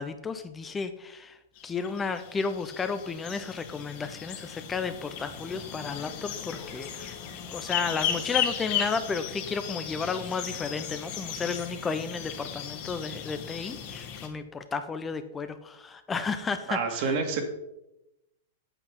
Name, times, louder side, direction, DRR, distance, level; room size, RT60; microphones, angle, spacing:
voice 1, 0.0-1.4 1.6-7.2 7.5-17.1, left 5 dB, 15° left, 9 dB, 0.7 m, -33 dB
sound 1, 1.6-14.3, left 8 dB, 50° left, 2.2 m, -36 dB
voice 2, 16.7-17.4, right 5 dB, 50° right, 5 dB, 2.2 m, -28 dB
8.3 x 7.8 x 5.3 m, 0.90 s
figure-of-eight pair, 105°, 0 cm